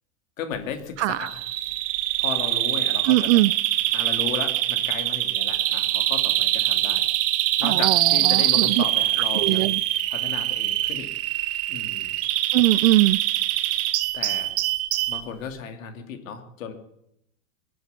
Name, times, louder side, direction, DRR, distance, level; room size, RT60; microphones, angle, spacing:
voice 1, 0.4-1.5 2.2-3.4 3.9-7.0 7.6-9.8 10.1-11.1 11.7-12.1 14.1-14.5 15.1-16.7, left 7 dB, 75° left, 2.7 m, -35 dB
voice 2, 1.0-1.3 3.0-3.5 7.6-8.8 9.3-9.8 12.5-13.2, right 18 dB, 65° right, 0.5 m, -21 dB
Bird vocalization bird call bird song, 1.2-15.2, right 15 dB, 35° right, 0.9 m, -24 dB
22.0 x 7.8 x 8.2 m
supercardioid pair, 130°, 40 cm